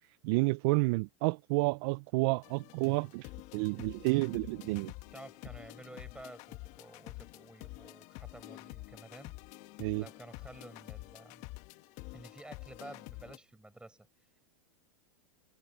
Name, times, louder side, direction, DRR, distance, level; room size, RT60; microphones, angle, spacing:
voice 1, 0.2-4.9 9.8-10.0, right 25 dB, 55° right, 0.5 m, -30 dB
sound 1, 2.4-13.4, left 22 dB, 50° left, 1.4 m, -48 dB
voice 2, 5.1-9.3 10.0-11.4 12.1-14.1, right 2 dB, 5° right, 6.5 m, -51 dB
hypercardioid pair, 115°, 15 cm